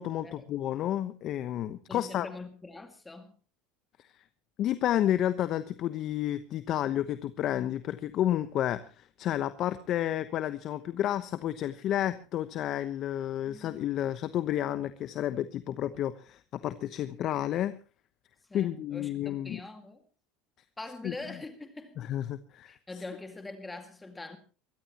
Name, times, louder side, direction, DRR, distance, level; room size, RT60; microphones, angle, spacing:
voice 1, 0.0-2.3 4.1-4.2 4.6-17.8 18.5-19.6 21.0-21.1 22.0-22.8, left 12 dB, 50° left, 1.0 m, -31 dB
voice 2, 1.9-3.3 13.4-13.8 18.5-20.0 20.8-22.0 22.7-24.4, left 2 dB, 15° left, 2.1 m, -43 dB
23.0 x 16.0 x 3.0 m
hypercardioid pair, 95°, 0 cm